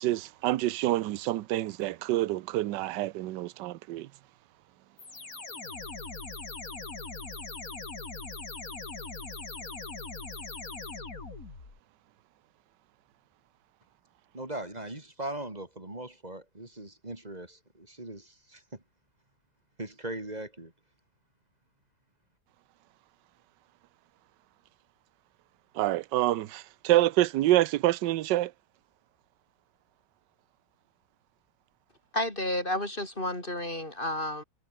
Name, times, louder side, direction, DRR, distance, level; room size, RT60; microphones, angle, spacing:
voice 1, 0.0-4.1 25.8-28.5, right 15 dB, 75° right, 1.3 m, -27 dB
sound 1, 5.0-11.8, left 3 dB, 50° left, 3.7 m, -40 dB
voice 2, 14.3-18.6 19.8-20.7, right 1 dB, 20° right, 3.2 m, -39 dB
voice 3, 32.1-34.4, left 1 dB, 25° left, 4.3 m, -31 dB
omnidirectional pair, 2.0 m